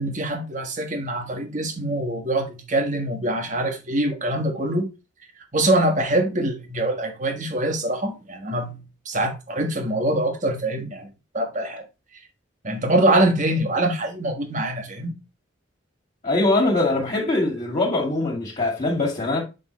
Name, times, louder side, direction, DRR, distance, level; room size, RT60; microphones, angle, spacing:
voice 1, 0.0-4.9 5.5-8.8 9.0-11.1 11.3-11.8 12.6-15.1, right 1 dB, 40° right, 1.4 m, -24 dB
voice 2, 16.2-19.4, left 2 dB, 35° left, 2.1 m, -22 dB
7.8 x 5.4 x 3.1 m
head